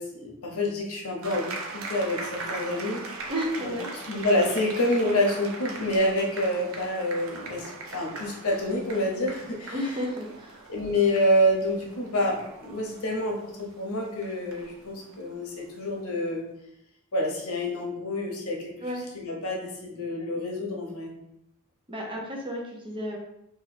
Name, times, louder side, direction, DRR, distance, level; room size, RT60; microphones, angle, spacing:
voice 1, 0.0-1.5 1.7-3.0 3.6-9.8 10.7-16.4 17.1-18.7 19.1-21.1, left 1 dB, 70° left, 0 dB, 0.9 m, -27 dB
sound 1, 1.2-16.2, right 3 dB, 70° right, 0.6 m, -41 dB
voice 2, 3.3-3.9 9.7-10.6 18.8-19.0 21.9-23.2, equal, 25° right, -2 dB, 0.8 m, -32 dB
3.0 x 2.6 x 4.2 m, 0.80 s
head